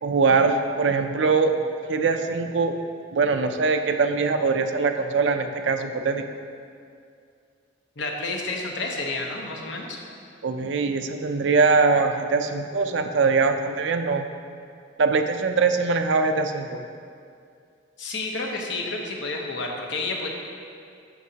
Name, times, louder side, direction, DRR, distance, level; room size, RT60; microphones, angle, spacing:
voice 1, 0.0-1.5 1.9-2.7 3.1-6.2 10.4-14.3 15.0-16.8, right 4 dB, 75° right, 6 dB, 0.5 m, -22 dB
voice 2, 8.0-10.0 18.0-20.3, left 2 dB, 80° left, 0 dB, 0.9 m, -30 dB
9.3 x 6.2 x 2.8 m, 2.4 s
head